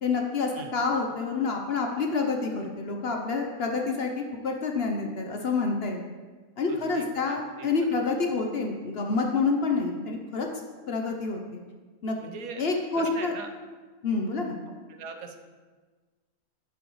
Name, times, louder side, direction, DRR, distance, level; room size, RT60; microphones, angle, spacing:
voice 1, 0.0-6.0 6.6-11.6 12.0-12.1 12.6-13.3 14.0-14.6, left 4 dB, 55° left, 2 dB, 0.8 m, -28 dB
voice 2, 6.7-8.0 12.2-12.7 12.9-13.5 14.9-15.4, right 4 dB, 75° right, 5 dB, 1.2 m, -41 dB
10.0 x 7.0 x 3.1 m, 1.4 s
omnidirectional pair, 1.5 m